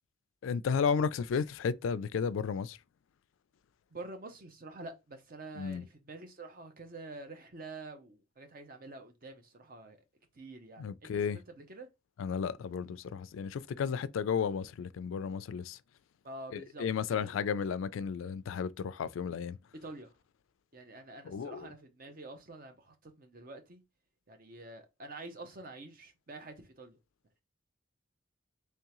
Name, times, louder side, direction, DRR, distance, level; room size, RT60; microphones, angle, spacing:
voice 1, 0.4-2.8 5.6-5.8 10.8-11.4 12.2-15.8 16.5-19.6 21.2-21.7, left 6 dB, 90° left, 0.3 m, -33 dB
voice 2, 3.9-10.0 10.3-11.9 16.2-16.8 17.1-17.3 19.8-20.1 20.7-23.8 24.3-27.0, right 2 dB, 45° right, 0.7 m, -47 dB
3.6 x 3.2 x 2.9 m
head